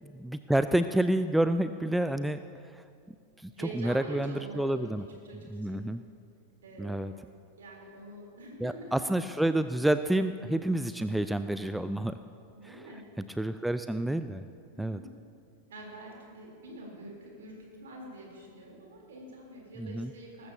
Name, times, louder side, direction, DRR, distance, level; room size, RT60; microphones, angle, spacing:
voice 1, 0.1-2.4 2.6-5.1 5.5-6.0 6.8-7.1 8.6-12.2 12.6-12.8 13.2-14.4 14.8-15.0 19.8-20.1, right 1 dB, 5° right, 11 dB, 0.3 m, -29 dB
voice 2, 3.5-4.9 5.2-5.8 6.6-7.2 7.6-9.1 12.5-13.0 14.7-15.1 15.7-20.5, right 2 dB, 65° right, -1 dB, 3.6 m, -45 dB
20.0 x 13.5 x 2.8 m, 2.3 s
figure-of-eight pair, 90°, 0 cm